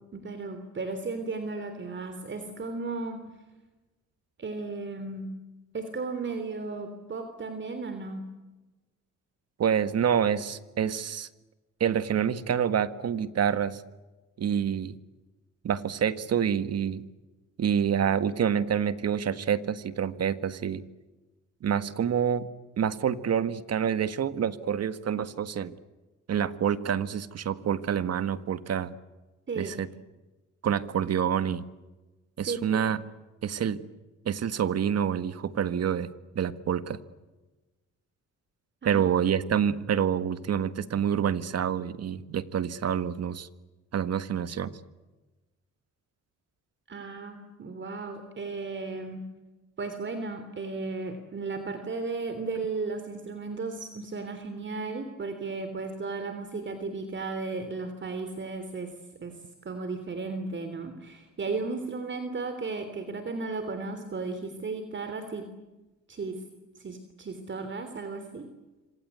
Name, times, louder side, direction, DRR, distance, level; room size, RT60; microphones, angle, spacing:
voice 1, 0.1-3.3 4.4-5.3 5.7-8.3 29.5-29.8 32.4-32.9 38.8-39.0 46.9-49.3 49.8-58.9 59.2-65.5 66.1-66.4 66.8-68.5, right 3 dB, 40° right, 8 dB, 3.3 m, -35 dB
voice 2, 9.6-11.3 11.8-13.8 14.4-15.0 15.6-17.0 17.6-20.8 21.6-22.5 22.8-25.7 26.3-28.9 29.6-29.9 30.6-31.6 32.4-33.0 33.4-33.8 34.3-36.1 36.3-37.0 38.8-43.5 43.9-44.7, right 8 dB, 55° right, 12 dB, 1.8 m, -27 dB
27.0 x 26.0 x 8.3 m, 1.1 s
cardioid pair, 90°, 30 cm